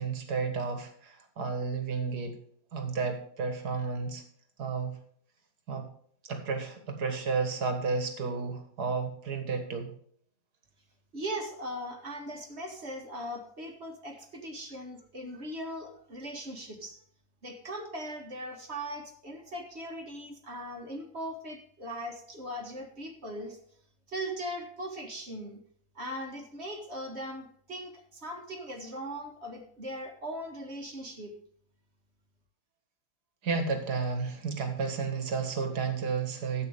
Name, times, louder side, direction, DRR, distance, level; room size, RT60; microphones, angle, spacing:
voice 1, 0.0-2.4 2.7-4.2 4.6-5.0 5.7-5.9 6.2-9.9 33.4-36.7, right 4 dB, 85° right, 6 dB, 2.2 m, -32 dB
voice 2, 11.1-17.0 17.4-23.6 24.1-25.6 26.0-31.3, equal, 45° right, 3 dB, 1.8 m, -39 dB
13.0 x 8.4 x 3.5 m, 0.63 s
omnidirectional pair, 1.7 m